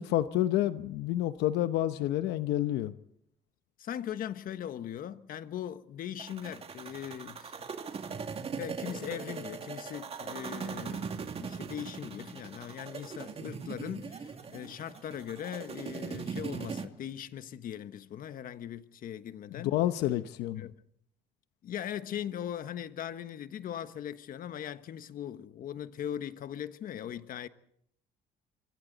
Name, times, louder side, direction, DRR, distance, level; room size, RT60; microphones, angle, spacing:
voice 1, 0.0-2.9 19.5-20.7, left 13 dB, 85° left, 0.9 m, -29 dB
voice 2, 3.8-7.6 8.6-19.7 20.6-20.8 21.6-27.5, left 10 dB, 55° left, 1.3 m, -40 dB
sound 1, 6.2-16.9, right 6 dB, 35° right, 2.3 m, -40 dB
26.0 x 25.0 x 4.1 m
cardioid pair, 110°, 17 cm